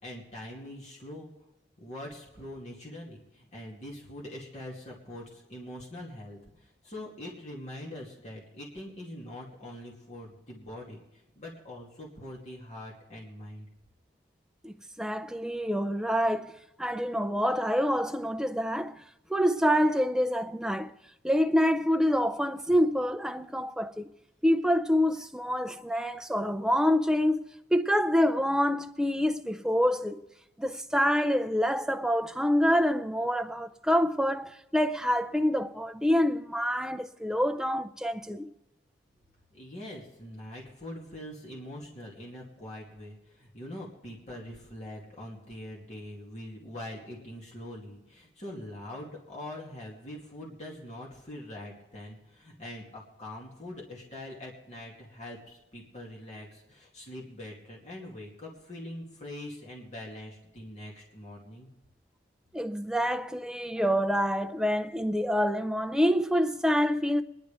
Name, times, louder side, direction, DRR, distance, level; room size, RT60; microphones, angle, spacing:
voice 1, 0.0-1.3 1.8-13.7 39.5-61.7, left 1 dB, 40° left, 2.4 m, -43 dB
voice 2, 14.6-19.0 19.3-20.9 21.2-24.1 24.4-30.2 30.6-38.5 62.5-67.2, equal, 5° right, 0.4 m, -27 dB
22.5 x 10.5 x 3.5 m
head